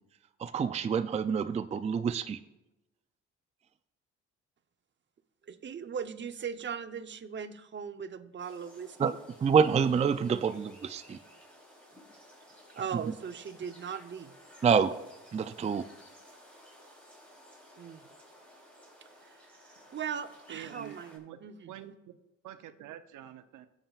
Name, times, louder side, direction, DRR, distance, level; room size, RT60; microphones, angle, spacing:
voice 1, 0.4-2.4 9.0-9.1 9.4-11.2 12.9-13.0 14.6-14.9 15.3-15.9, right 6 dB, 25° right, 11 dB, 0.4 m, -27 dB
voice 2, 5.4-9.2 12.7-14.3 17.8-18.0 19.0-19.6 19.9-21.1 21.4-21.7, right 7 dB, 40° right, 9 dB, 0.8 m, -39 dB
sound 1, 8.4-21.2, equal, 5° left, 3.4 m, -55 dB
voice 3, 20.5-21.4 21.7-23.7, right 11 dB, 80° right, 10 dB, 0.6 m, -47 dB
17.0 x 7.3 x 2.4 m, 0.98 s
cardioid pair, 90°, 30 cm